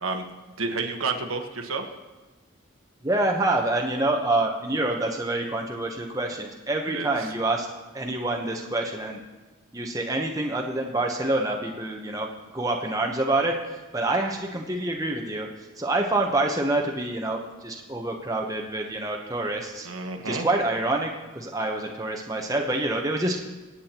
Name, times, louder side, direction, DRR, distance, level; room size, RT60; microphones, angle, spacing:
voice 1, 0.6-1.8 6.9-7.3 19.8-20.5, right 4 dB, 85° right, 3 dB, 1.3 m, -30 dB
voice 2, 3.0-7.7 7.9-9.2 9.7-12.3 12.5-13.5 13.9-15.5 15.8-19.9 20.2-23.4, right 2 dB, 15° right, 1 dB, 0.9 m, -26 dB
25.0 x 8.5 x 3.0 m, 1.2 s
head